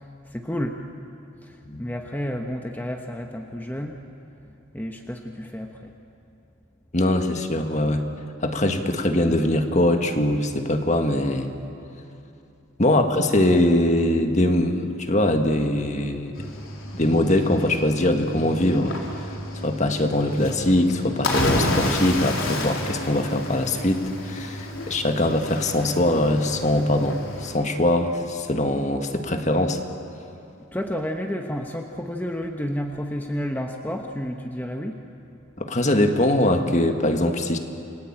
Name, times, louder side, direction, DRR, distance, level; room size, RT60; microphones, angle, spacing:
voice 1, 0.3-0.8 1.4-1.5 1.8-4.0 4.7-5.9 12.9-13.0 30.7-35.0, equal, 10° left, 3 dB, 1.1 m, -30 dB
voice 2, 6.9-8.0 8.4-11.5 12.8-16.4 16.9-18.9 19.6-29.8 35.6-37.6, left 1 dB, 35° left, 6 dB, 1.7 m, -22 dB
Cricket / Waves surf, 16.3-27.6, left 1 dB, 80° left, 3.9 m, -31 dB
29.0 x 22.0 x 8.8 m, 2.7 s
head